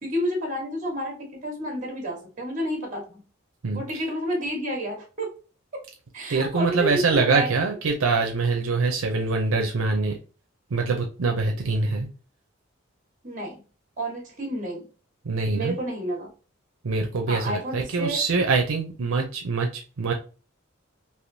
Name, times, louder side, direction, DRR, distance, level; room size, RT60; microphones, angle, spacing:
voice 1, 0.0-3.2 3.7-5.3 6.1-7.5 13.2-13.6 14.0-14.9 15.5-16.3 17.3-18.2, equal, 40° right, 2 dB, 1.2 m, -30 dB
voice 2, 3.6-4.0 6.3-10.2 10.7-12.1 15.2-15.8 16.8-20.1, right 4 dB, 80° right, 3 dB, 0.6 m, -24 dB
3.4 x 2.7 x 2.6 m, 0.35 s
head